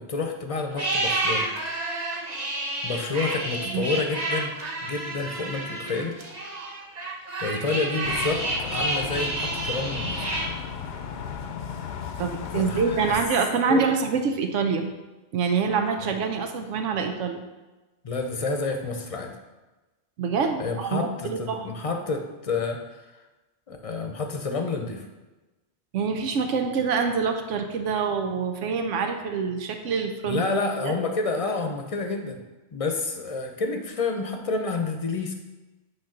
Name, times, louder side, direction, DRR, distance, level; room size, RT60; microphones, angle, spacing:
voice 1, 0.0-1.5 2.8-4.5 4.8-6.2 7.4-10.3 12.5-13.2 13.7-13.8 16.0-16.1 18.0-19.3 20.6-22.8 23.7-25.1 30.3-32.4 32.7-35.3, left 3 dB, 35° left, 4 dB, 0.7 m, -29 dB
sound 1, 0.7-10.5, right 2 dB, 40° right, 1.0 m, -30 dB
sound 2, 8.0-13.3, left 7 dB, 65° left, 0.8 m, -35 dB
voice 2, 12.2-14.9 15.3-17.5 20.2-21.7 25.9-30.4 30.8-30.9, right 5 dB, 85° right, 5 dB, 1.1 m, -26 dB
9.0 x 3.2 x 5.8 m, 1.1 s
omnidirectional pair, 1.2 m